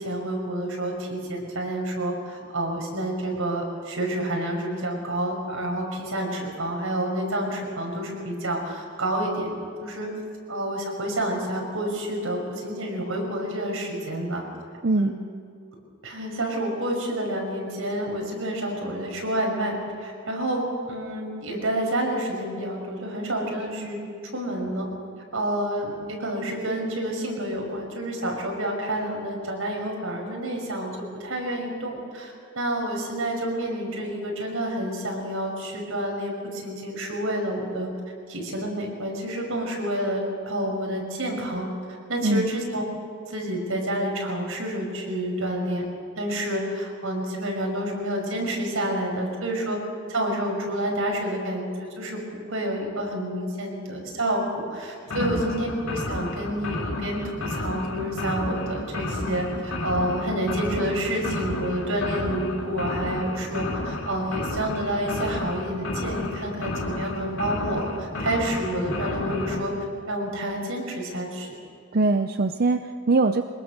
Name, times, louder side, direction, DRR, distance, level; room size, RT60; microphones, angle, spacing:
voice 1, 0.0-10.1 10.5-14.4 15.0-15.2 16.0-24.0 24.3-24.9 25.3-37.9 38.3-41.7 42.1-42.8 43.3-45.8 46.2-49.8 50.1-69.7 70.1-71.5, right 1 dB, 80° right, 1 dB, 5.9 m, -29 dB
voice 2, 14.8-15.1 42.2-42.5 55.2-55.4 71.9-73.4, right 3 dB, 45° right, 8 dB, 0.6 m, -22 dB
sound 1, 55.1-69.6, left 2 dB, 80° left, 2.9 m, -32 dB
23.5 x 20.5 x 6.6 m, 2.3 s
head